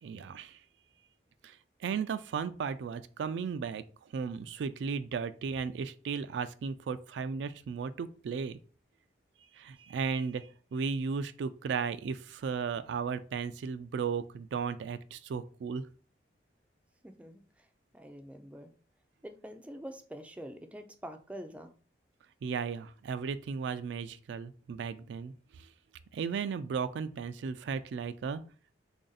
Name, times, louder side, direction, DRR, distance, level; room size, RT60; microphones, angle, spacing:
voice 1, 0.0-0.6 1.4-3.8 4.1-8.6 9.5-15.9 22.4-25.3 25.6-25.7 26.1-28.4, right 5 dB, 85° right, 0.3 m, -35 dB
voice 2, 17.0-17.4 17.9-18.7 19.2-21.7, equal, 5° right, 0.3 m, -45 dB
3.4 x 2.6 x 3.9 m
head